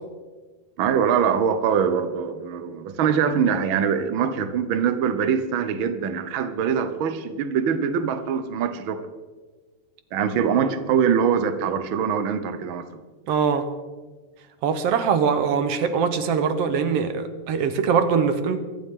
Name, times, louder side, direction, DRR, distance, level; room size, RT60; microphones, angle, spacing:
voice 1, 0.8-9.0 10.1-12.8, right 7 dB, 80° right, 9 dB, 1.1 m, -23 dB
voice 2, 13.3-13.7 14.6-18.6, right 6 dB, 65° right, 9 dB, 1.8 m, -22 dB
23.5 x 12.0 x 3.7 m, 1.3 s
omnidirectional pair, 3.6 m